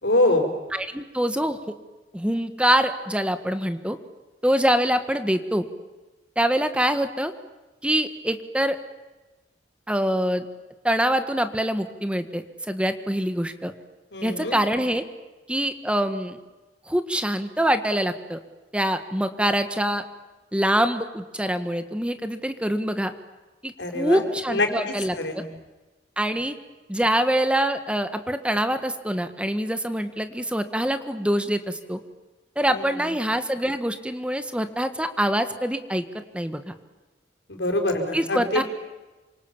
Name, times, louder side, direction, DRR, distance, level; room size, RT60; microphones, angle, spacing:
voice 1, 0.0-0.5 14.1-14.6 23.8-24.2 24.5-25.5 32.7-33.1 37.5-38.6, left 2 dB, 85° left, 5 dB, 5.2 m, -25 dB
voice 2, 0.7-1.6 2.1-4.0 4.4-5.7 6.4-7.3 7.8-8.8 9.9-10.4 10.8-13.7 14.2-15.0 15.5-16.4 16.9-18.4 18.7-20.0 20.5-23.1 23.6-25.4 26.2-26.5 26.9-32.0 32.5-36.0 36.3-36.7 38.1-38.6, equal, 5° right, 9 dB, 1.5 m, -24 dB
28.5 x 26.0 x 7.3 m, 1.2 s
head